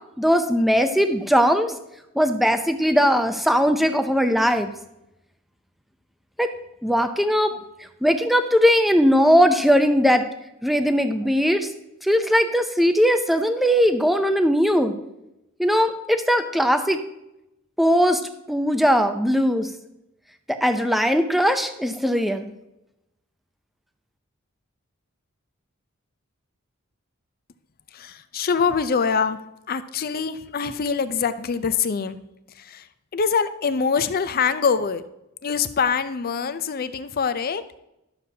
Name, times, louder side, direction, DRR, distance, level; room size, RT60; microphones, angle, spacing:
voice 1, 0.2-1.8 2.2-4.7 6.4-6.5 6.8-7.6 8.0-10.2 10.6-11.7 12.0-14.9 15.6-17.0 17.8-18.2 18.5-19.7 20.6-22.5, equal, ahead, 7 dB, 0.5 m, -19 dB
voice 2, 27.9-29.4 29.7-32.2 32.5-32.9 33.1-35.0 35.4-37.6, left 6 dB, 45° left, 12 dB, 0.5 m, -24 dB
11.0 x 6.8 x 2.8 m, 0.88 s
head